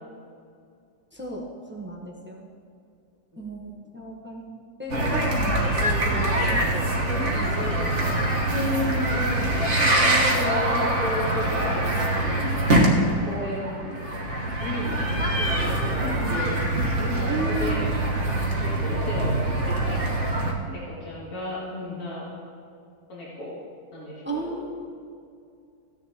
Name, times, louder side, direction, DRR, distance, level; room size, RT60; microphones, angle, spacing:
voice 1, 1.1-2.5 3.4-7.0 7.3-8.2 16.0-16.3 17.3-17.8 24.2-24.9, right 2 dB, 10° right, -1 dB, 0.6 m, -35 dB
sound 1, 4.9-20.5, right 1 dB, 40° right, 1.4 m, -24 dB
voice 2, 8.3-11.7 12.4-12.9 13.2-14.0 14.6-15.0 15.5-16.6 17.0-17.8 18.3-20.1 20.7-22.3 23.1-23.5 23.9-24.6, left 1 dB, 55° left, -8 dB, 2.8 m, -33 dB
15.0 x 10.0 x 2.9 m, 2.4 s
omnidirectional pair, 2.0 m